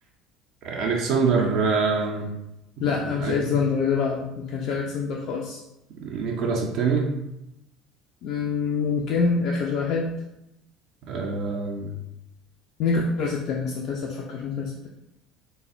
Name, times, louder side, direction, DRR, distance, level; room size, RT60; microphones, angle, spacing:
voice 1, 0.6-2.3 3.0-3.6 6.0-7.2 11.1-11.9, right 4 dB, 55° right, 0 dB, 0.4 m, -25 dB
voice 2, 2.8-5.6 8.2-10.1 12.8-14.9, left 5 dB, 55° left, -1 dB, 0.3 m, -26 dB
3.3 x 2.1 x 2.4 m, 0.87 s
figure-of-eight pair, 65°, 0 cm